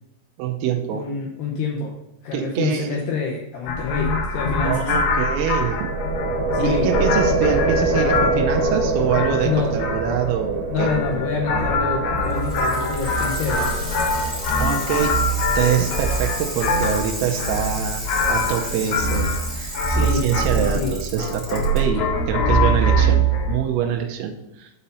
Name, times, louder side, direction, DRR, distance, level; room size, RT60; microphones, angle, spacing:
voice 1, 0.4-1.1 2.3-3.0 4.6-6.0 6.6-10.9 14.6-15.2 15.6-24.7, right 8 dB, 90° right, 3 dB, 3.4 m, -25 dB
voice 2, 0.9-1.9 2.2-4.9 6.5-6.9 9.4-9.7 10.7-14.0 19.9-20.2 20.5-21.0, left 5 dB, 90° left, -1 dB, 2.3 m, -27 dB
sound 1, 3.7-23.6, equal, 70° left, 3.4 m, -23 dB
sound 2, 5.7-15.6, right 2 dB, 65° right, 2.5 m, -26 dB
Bicycle, 12.2-21.8 22.9-23.0, equal, 30° right, 0.9 m, -33 dB
8.0 x 4.3 x 5.4 m, 0.92 s
omnidirectional pair, 5.9 m